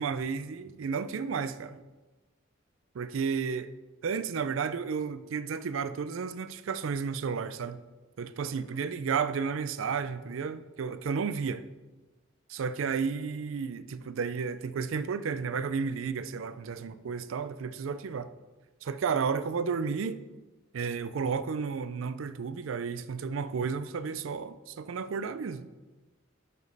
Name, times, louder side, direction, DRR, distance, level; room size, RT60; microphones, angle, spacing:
voice 1, 0.0-1.8 2.9-3.7 4.0-7.8 8.2-11.7 12.5-18.3 18.8-20.2 20.7-25.7, right 5 dB, 90° right, 0.4 m, -32 dB
6.6 x 5.1 x 5.4 m
head